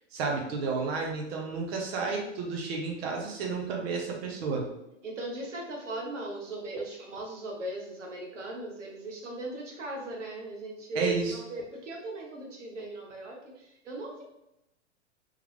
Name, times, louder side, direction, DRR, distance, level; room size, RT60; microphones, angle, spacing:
voice 1, 0.1-4.6 10.9-11.4, right 4 dB, 60° right, 0 dB, 1.1 m, -31 dB
voice 2, 5.0-14.2, right 2 dB, 90° right, 0 dB, 1.1 m, -38 dB
3.8 x 3.3 x 3.2 m, 0.85 s
hypercardioid pair, 115°, 36 cm